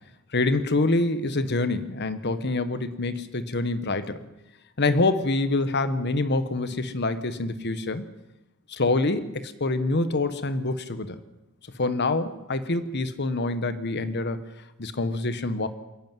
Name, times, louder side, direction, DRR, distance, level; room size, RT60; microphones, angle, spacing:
voice 1, 0.3-4.3 4.8-8.1 8.7-11.2 11.8-14.4 14.8-15.7, left 2 dB, 55° left, 12 dB, 1.3 m, -26 dB
27.5 x 11.5 x 9.3 m, 0.95 s
head